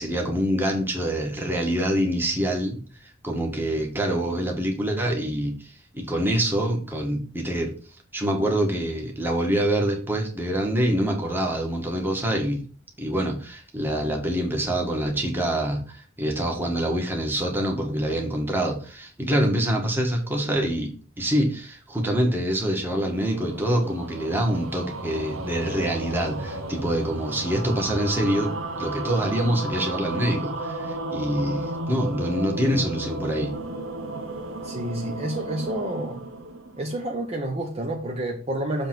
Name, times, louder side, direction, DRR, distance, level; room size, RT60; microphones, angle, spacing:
voice 1, 0.0-2.8 3.2-7.7 8.1-12.6 13.0-28.5 28.8-33.5, right 1 dB, 10° right, 1.6 m, -25 dB
sound 1, 22.9-37.3, right 2 dB, 75° right, 1.0 m, -33 dB
voice 2, 34.6-36.3 36.8-38.9, right 1 dB, 30° right, 1.0 m, -29 dB
7.1 x 3.5 x 6.0 m
head